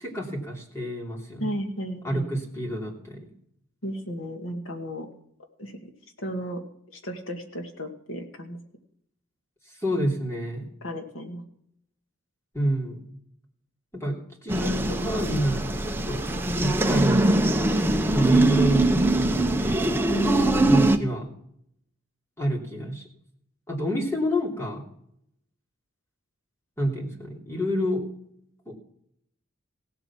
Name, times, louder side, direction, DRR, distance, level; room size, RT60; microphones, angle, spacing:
voice 1, 0.0-1.5 2.0-3.3 9.8-10.7 12.5-13.0 13.9-16.2 16.5-17.3 18.1-19.9 20.7-21.3 22.4-23.0 23.7-24.8 26.8-28.1 28.7-28.8, equal, 15° left, -1 dB, 3.0 m, -28 dB
voice 2, 1.4-2.3 3.8-5.1 5.6-5.9 6.2-6.6 6.9-8.6 10.8-11.4 20.1-20.7, equal, 75° left, 5 dB, 2.1 m, -33 dB
sound 1, 14.5-21.0, right 2 dB, 10° right, 0.8 m, -22 dB
17.0 x 8.1 x 6.0 m, 0.71 s
head